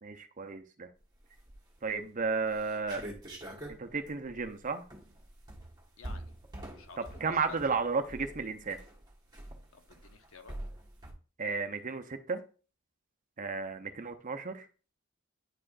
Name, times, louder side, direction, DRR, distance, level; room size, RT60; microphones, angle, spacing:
voice 1, 0.0-0.9 1.8-3.0 3.7-4.8 7.0-8.8 11.4-12.4 13.4-14.7, right 4 dB, 40° right, 8 dB, 0.7 m, -33 dB
sound 1, 1.3-1.8 2.2-2.3 2.5-11.1, right 1 dB, 20° right, 1.4 m, -45 dB
voice 2, 6.0-6.3 6.7-7.6 9.7-10.6, left 5 dB, 75° left, 7 dB, 0.9 m, -53 dB
9.6 x 4.9 x 2.5 m, 0.37 s
head